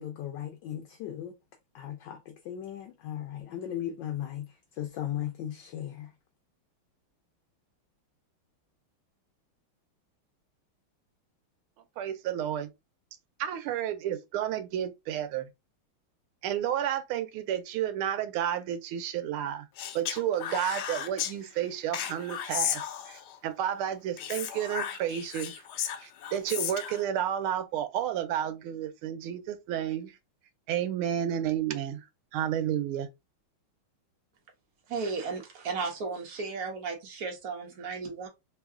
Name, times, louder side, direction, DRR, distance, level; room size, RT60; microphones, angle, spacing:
voice 1, 0.0-1.3 1.7-6.1, left 11 dB, 70° left, 1.2 m, -37 dB
voice 2, 12.0-12.7 13.4-15.5 16.4-19.7 19.9-25.6 26.0-30.2 30.7-32.1 32.3-33.1, right 10 dB, 85° right, 1.5 m, -31 dB
Speech, 19.8-21.3 21.9-23.4 24.2-27.0, left 10 dB, 85° left, 0.8 m, -34 dB
voice 3, 34.9-38.3, right 4 dB, 55° right, 1.2 m, -34 dB
3.6 x 2.1 x 3.5 m
omnidirectional pair, 2.3 m